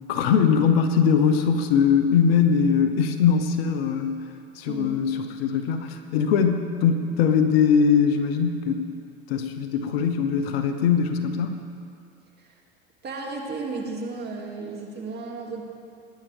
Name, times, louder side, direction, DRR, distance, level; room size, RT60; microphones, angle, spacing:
voice 1, 0.1-4.1 4.6-8.8 9.3-11.6, left 6 dB, 80° left, 7 dB, 1.0 m, -21 dB
voice 2, 13.0-15.6, right 3 dB, 35° right, -1 dB, 2.7 m, -34 dB
20.5 x 10.5 x 3.6 m, 2.5 s
hypercardioid pair, 90°, 30 cm